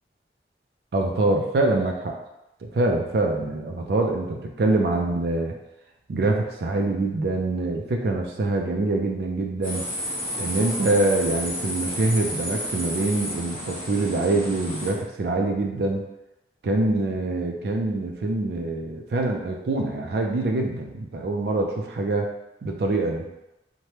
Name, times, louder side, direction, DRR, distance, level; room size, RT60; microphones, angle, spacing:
voice 1, 0.9-2.1 2.6-5.5 6.1-9.9 10.4-16.0 16.6-22.3 22.6-23.3, right 2 dB, 60° right, 1 dB, 0.4 m, -24 dB
sound 1, 9.6-14.9, equal, 10° left, 1.1 m, -31 dB
3.1 x 2.1 x 2.8 m, 0.92 s
head